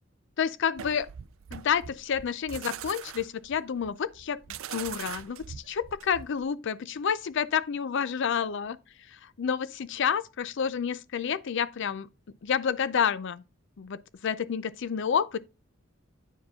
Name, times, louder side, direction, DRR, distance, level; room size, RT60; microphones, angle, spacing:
voice 1, 0.4-1.1 1.5-4.4 4.7-8.8 9.1-12.1 12.4-13.4 13.8-15.4, left 7 dB, 65° left, 0.5 m, -29 dB
sound 1, 0.8-6.5, right 8 dB, 90° right, 0.5 m, -42 dB
9.0 x 4.8 x 3.6 m
head